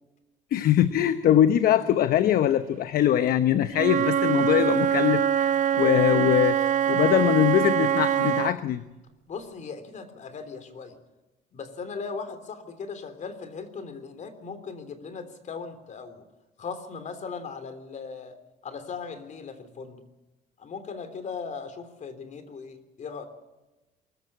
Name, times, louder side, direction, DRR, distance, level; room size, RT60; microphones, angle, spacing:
voice 1, 0.5-8.8, left 11 dB, 60° left, 11 dB, 0.9 m, -22 dB
Wind instrument woodwind instrument, 3.7-8.6, right 9 dB, 50° right, 0.6 m, -24 dB
voice 2, 9.3-11.0 11.5-16.2 16.6-18.4 18.6-20.0 20.6-23.2, left 5 dB, 45° left, 9 dB, 3.4 m, -38 dB
23.5 x 15.0 x 8.6 m, 1.0 s
cardioid pair, 110°, 17 cm